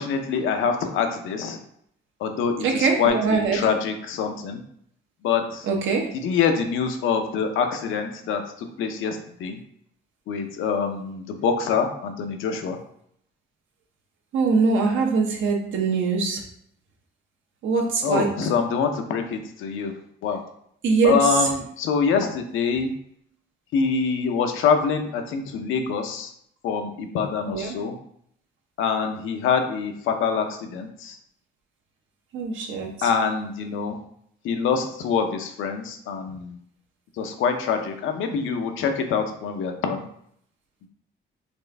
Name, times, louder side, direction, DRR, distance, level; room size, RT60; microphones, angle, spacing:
voice 1, 0.0-1.6 2.2-4.6 5.2-5.7 6.2-9.6 10.3-12.8 18.0-19.9 20.2-20.4 21.0-22.9 23.7-26.3 26.6-27.9 28.8-31.2 33.0-34.0 34.4-36.6 37.2-40.0 40.8-40.9, left 6 dB, 85° left, 6 dB, 0.6 m, -25 dB
voice 2, 2.6-3.7 5.6-6.1 14.3-16.4 17.6-18.3 20.8-21.3 27.5-27.8 32.3-33.1, right 4 dB, 80° right, 1 dB, 0.9 m, -22 dB
4.3 x 2.5 x 3.3 m, 0.69 s
cardioid pair, 90°, 20 cm